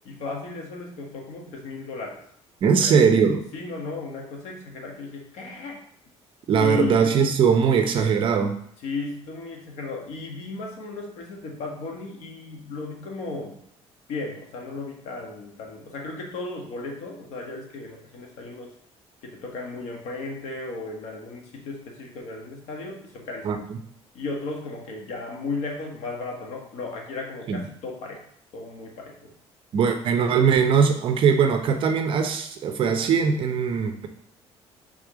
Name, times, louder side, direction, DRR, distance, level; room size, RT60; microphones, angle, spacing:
voice 1, 0.0-2.2 2.8-3.0 3.5-5.8 6.6-7.1 8.8-13.6 14.1-18.7 19.2-23.7 24.1-28.2 28.5-29.3, left 3 dB, 75° left, 0 dB, 1.5 m, -35 dB
voice 2, 2.6-3.4 6.5-8.5 23.4-23.6 27.5-27.6 29.7-34.1, right 6 dB, 50° right, 6 dB, 0.7 m, -20 dB
5.2 x 3.6 x 5.0 m, 0.68 s
cardioid pair, 145°, 12 cm